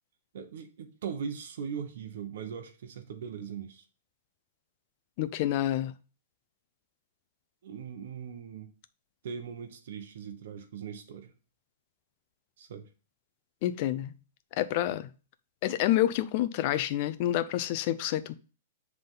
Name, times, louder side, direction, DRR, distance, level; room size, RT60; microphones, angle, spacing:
voice 1, 0.3-3.9 7.6-8.7 9.2-11.3 12.6-12.9, right 7 dB, 65° right, 1.0 m, -40 dB
voice 2, 5.2-5.9 13.6-14.1 14.6-15.1 15.6-18.3, left 13 dB, 40° left, 0.5 m, -28 dB
7.8 x 3.6 x 3.8 m
hypercardioid pair, 165°, 0 cm